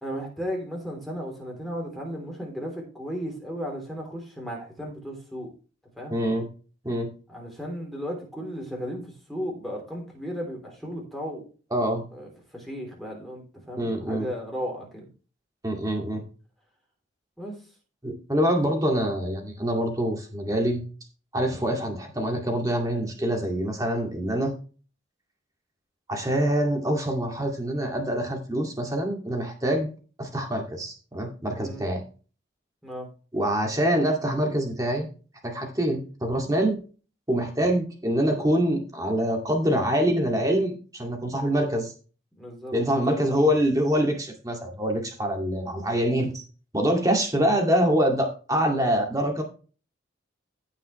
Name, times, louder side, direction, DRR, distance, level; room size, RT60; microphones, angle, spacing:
voice 1, 0.0-5.5 6.0-6.2 7.3-11.4 12.1-15.1 17.4-17.6 31.6-31.8 32.8-33.1 42.4-43.2, equal, ahead, -1 dB, 3.3 m, -35 dB
voice 2, 6.1-6.5 6.8-7.1 11.7-12.0 13.8-14.3 15.6-16.2 18.0-20.8 21.3-24.5 26.1-29.9 30.2-32.0 33.3-35.1 35.4-36.8 37.3-41.9 42.7-46.4 46.7-49.4, equal, 15° right, 2 dB, 2.2 m, -25 dB
16.0 x 5.7 x 3.2 m, 0.37 s
head